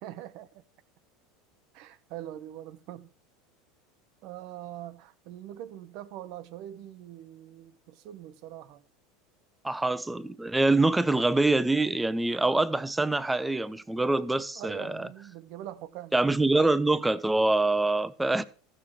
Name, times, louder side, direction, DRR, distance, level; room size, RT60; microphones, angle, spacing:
voice 1, 0.0-0.6 1.7-3.1 4.2-8.8 14.6-16.2, right 12 dB, 60° right, 0.7 m, -43 dB
voice 2, 9.6-15.1 16.1-18.4, right 2 dB, 10° right, 0.6 m, -25 dB
14.5 x 6.6 x 4.4 m
hypercardioid pair, 80°, 0 cm